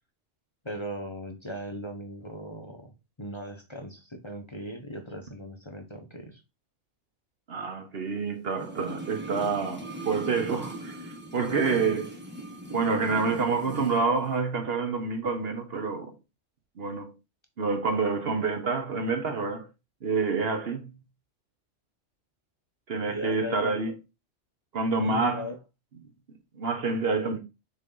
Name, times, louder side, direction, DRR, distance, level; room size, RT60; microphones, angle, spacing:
voice 1, 0.6-2.9 3.2-6.4 23.1-23.7 25.0-25.6, equal, 25° left, 0.9 m, -38 dB
voice 2, 7.5-12.2 12.7-16.1 16.8-17.1 17.6-19.7 20.0-20.9 22.9-23.9 24.7-25.5 26.5-27.4, right 4 dB, 55° right, 1.1 m, -28 dB
sound 1, 8.5-14.0 14.3-14.4, right 1 dB, 10° right, 1.2 m, -39 dB
6.4 x 4.0 x 3.8 m
omnidirectional pair, 1.2 m